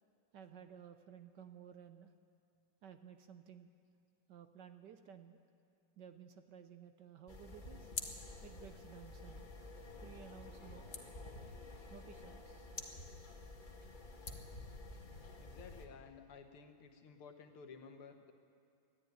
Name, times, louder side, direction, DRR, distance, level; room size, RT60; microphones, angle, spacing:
voice 1, 0.3-2.1 2.8-3.7 4.3-5.4 6.0-7.9 8.4-9.5 10.0-11.1 11.9-12.7 13.8-13.9, right 8 dB, 65° right, 9 dB, 1.2 m, -55 dB
sound 1, 7.3-15.9, left 2 dB, 25° left, 1.3 m, -49 dB
voice 2, 15.4-18.3, left 5 dB, 80° left, 6 dB, 2.2 m, -55 dB
21.5 x 13.5 x 9.4 m, 2.5 s
omnidirectional pair, 2.4 m